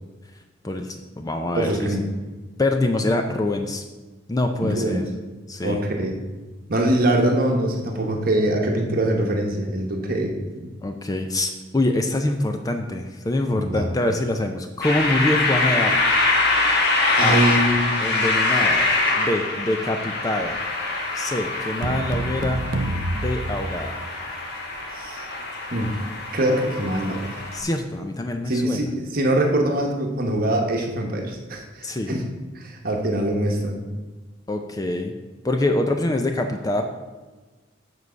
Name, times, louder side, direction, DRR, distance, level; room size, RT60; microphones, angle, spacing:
voice 1, 0.6-2.0 2.6-3.8 4.3-5.0 5.5-5.8 10.8-16.0 17.2-17.4 18.0-18.9 19.2-20.6 21.1-22.6 23.1-24.0 27.5-28.8 31.8-32.1 34.5-35.1 35.4-36.8, left 1 dB, 20° left, 5 dB, 0.5 m, -25 dB
voice 2, 1.5-2.1 4.6-5.1 5.6-6.2 6.7-10.7 13.5-13.9 17.2-17.9 24.9-25.3 25.7-25.9 26.3-27.2 28.5-32.3 32.5-33.8, right 1 dB, 50° right, 1 dB, 1.1 m, -23 dB
sound 1, 14.8-27.6, left 2 dB, 55° left, 1.5 m, -24 dB
sound 2, 21.8-24.3, right 1 dB, 70° right, 0.6 m, -28 dB
7.3 x 4.7 x 6.7 m, 1.3 s
head